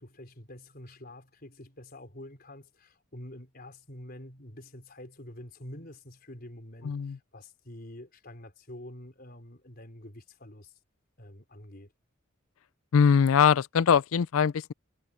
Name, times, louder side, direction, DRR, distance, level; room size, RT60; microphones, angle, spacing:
voice 1, 0.0-10.8 11.2-11.9, left 1 dB, 45° left, 4.3 m, -47 dB
voice 2, 6.8-7.2 12.9-14.7, left 7 dB, 85° left, 0.4 m, -22 dB
head